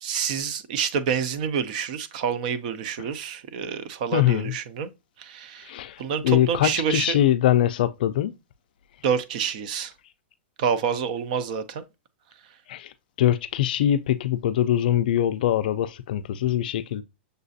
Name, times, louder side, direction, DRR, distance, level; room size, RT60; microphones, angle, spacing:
voice 1, 0.0-4.9 5.2-5.7 6.0-7.2 9.0-9.9 10.6-11.8, right 7 dB, 40° right, 0.5 m, -27 dB
voice 2, 4.1-4.5 5.7-8.3 12.7-12.9 13.2-17.0, left 11 dB, 50° left, 0.4 m, -23 dB
6.5 x 2.4 x 2.6 m
hypercardioid pair, 165°, 6 cm